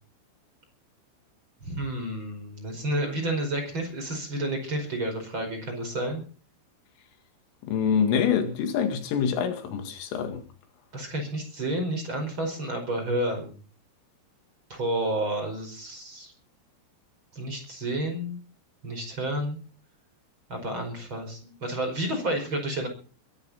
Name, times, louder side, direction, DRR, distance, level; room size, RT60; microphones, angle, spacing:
voice 1, 1.6-6.2 10.9-13.5 14.7-16.3 17.3-18.4 18.8-19.6 20.5-22.9, right 1 dB, 25° right, 5.3 m, -30 dB
voice 2, 7.6-10.4, left 7 dB, 90° left, 4.7 m, -26 dB
22.0 x 13.0 x 4.2 m
omnidirectional pair, 5.6 m